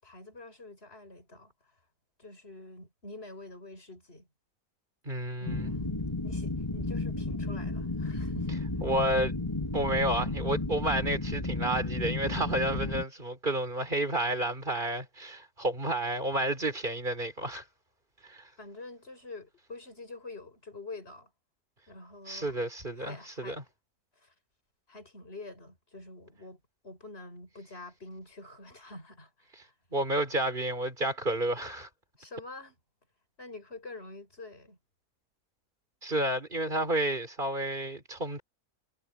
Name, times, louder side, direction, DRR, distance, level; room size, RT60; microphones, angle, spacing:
voice 1, 0.0-1.5 2.2-4.3 5.4-8.6 18.6-21.3 21.9-22.6 23.0-23.6 24.2-24.3 24.9-29.7 32.2-32.8 33.4-34.8, left 2 dB, 40° left, 6.7 m, -46 dB
voice 2, 5.1-5.7 8.8-9.3 9.7-17.6 18.3-18.4 22.3-23.6 29.9-31.9 36.0-38.4, right 1 dB, 35° right, 4.2 m, -30 dB
sound 1, 5.5-13.0, left 2 dB, 20° left, 3.2 m, -33 dB
omnidirectional pair, 1.6 m